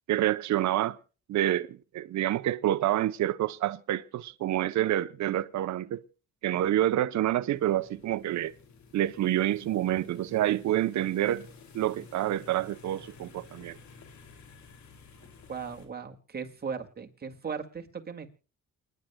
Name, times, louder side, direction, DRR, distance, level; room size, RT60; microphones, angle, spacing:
voice 1, 0.1-1.0 1.3-6.0 6.4-8.5 8.9-11.5 11.7-13.8, right 13 dB, 65° right, 0.7 m, -28 dB
sound 1, 7.5-15.9, left 4 dB, 70° left, 2.6 m, -52 dB
voice 2, 15.5-18.3, right 6 dB, 30° right, 2.1 m, -37 dB
28.5 x 10.5 x 2.2 m
cardioid pair, 90°, 30 cm